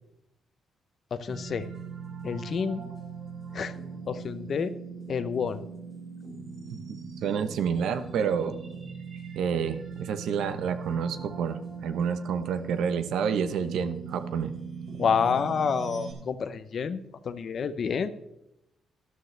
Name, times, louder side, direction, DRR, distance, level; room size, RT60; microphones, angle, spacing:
voice 1, 1.1-1.7 2.2-2.9 3.5-3.7 4.1-4.7 5.1-5.6 15.0-18.1, left 6 dB, 45° left, 12 dB, 0.7 m, -29 dB
sound 1, 1.3-16.1, right 6 dB, 55° right, 3.9 m, -40 dB
voice 2, 7.2-8.6 9.3-14.5, right 7 dB, 75° right, 11 dB, 0.9 m, -29 dB
13.0 x 12.5 x 3.3 m, 0.87 s
cardioid pair, 155°, 0 cm